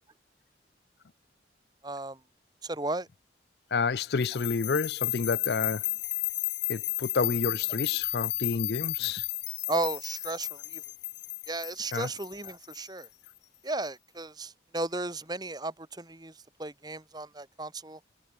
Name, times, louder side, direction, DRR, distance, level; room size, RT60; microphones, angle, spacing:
voice 1, 1.8-2.2 2.6-3.1 9.7-10.8 11.5-13.1 13.6-16.3 16.6-18.0, right 2 dB, 20° right, 1.8 m, -34 dB
voice 2, 3.7-5.9 6.7-9.3 11.9-12.1, left 4 dB, 60° left, 0.5 m, -29 dB
sound 1, 4.2-13.3, left 17 dB, 75° left, 1.7 m, -33 dB
head